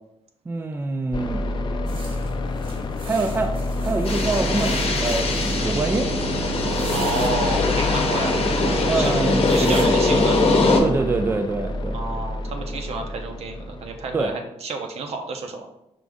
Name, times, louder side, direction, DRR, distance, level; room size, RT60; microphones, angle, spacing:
voice 1, 0.5-1.5 3.0-3.5 3.8-6.1 8.9-10.2 10.8-12.0 14.1-14.3, right 3 dB, 20° right, 5 dB, 0.3 m, -25 dB
sound 1, 1.1-14.2, left 1 dB, 45° left, 0.4 m, -28 dB
sound 2, 1.9-5.6 6.6-7.3 8.5-8.6 9.0-9.1 9.5-9.9, right 2 dB, 55° right, 1.0 m, -40 dB
sound 3, 4.0-10.8, left 3 dB, 65° left, 0.8 m, -22 dB
voice 2, 6.9-8.4 8.9-9.2 9.5-10.7 11.9-15.7, right 4 dB, 70° right, 3 dB, 0.7 m, -30 dB
5.0 x 2.5 x 3.5 m, 0.83 s
wide cardioid pair, 120°, 11 cm